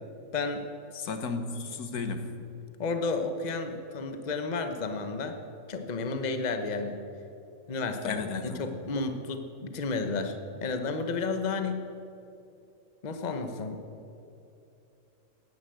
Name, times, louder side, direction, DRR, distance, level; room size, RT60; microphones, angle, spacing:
voice 1, 0.3-0.6 2.8-5.4 5.7-7.0 7.7-11.9 13.0-13.8, left 3 dB, 30° left, 7 dB, 1.0 m, -32 dB
voice 2, 0.9-2.4 8.0-8.8, left 4 dB, 80° left, 8 dB, 1.7 m, -34 dB
17.0 x 10.5 x 7.8 m, 2.8 s
omnidirectional pair, 1.6 m